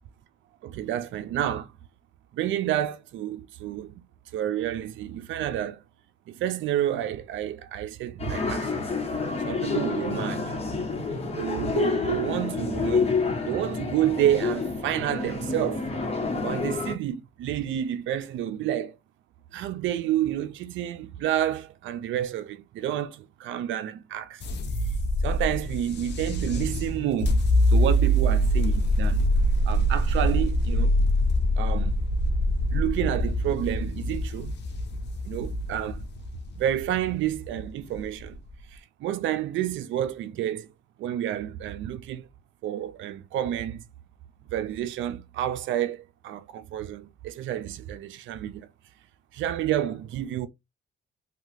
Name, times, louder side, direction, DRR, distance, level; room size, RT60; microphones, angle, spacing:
voice 1, 0.6-1.7 2.3-3.9 4.3-5.8 6.3-9.0 9.5-10.5 11.3-13.1 13.4-15.8 16.4-18.9 19.5-24.4 25.2-27.4 27.7-29.2 29.7-30.9 31.6-32.0 32.7-34.5 35.3-36.1 36.6-38.4 38.7-40.7 41.0-42.3 42.6-43.8 44.5-48.7 49.3-50.5, right 11 dB, 75° right, 0.5 m, -29 dB
sound 1, 8.2-16.9, left 4 dB, 30° left, 1.1 m, -28 dB
sound 2, 24.4-38.6, equal, 60° left, 0.8 m, -25 dB
2.9 x 2.3 x 3.2 m
cardioid pair, 90°, 20 cm